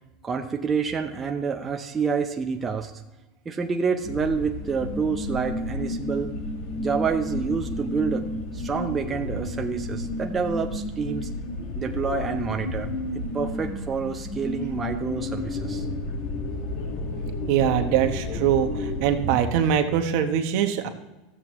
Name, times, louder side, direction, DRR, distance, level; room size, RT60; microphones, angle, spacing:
voice 1, 0.2-2.9 3.5-6.4 6.7-8.3 8.5-11.3 11.7-15.9, right 5 dB, 20° right, 4 dB, 0.6 m, -28 dB
sound 1, 4.0-19.4, left 2 dB, 55° left, 1.6 m, -31 dB
voice 2, 17.5-20.9, right 9 dB, 60° right, 6 dB, 1.0 m, -23 dB
13.5 x 7.6 x 3.0 m, 1.1 s
supercardioid pair, 135°, 0 cm